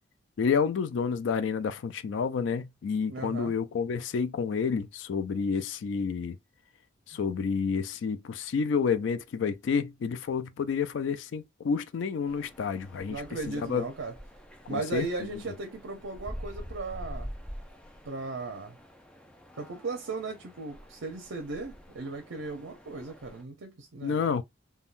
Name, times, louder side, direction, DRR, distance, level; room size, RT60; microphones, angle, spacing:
voice 1, 0.4-6.4 7.1-13.2 13.5-13.8 14.7-15.1 24.0-24.4, left 6 dB, 75° left, 0.3 m, -29 dB
voice 2, 3.1-3.5 7.1-7.2 13.1-14.1 14.7-17.3 18.0-18.8 19.6-24.3, right 3 dB, 80° right, 0.6 m, -37 dB
sound 1, 12.3-23.4, equal, 5° left, 0.4 m, -46 dB
3.6 x 2.2 x 2.4 m
head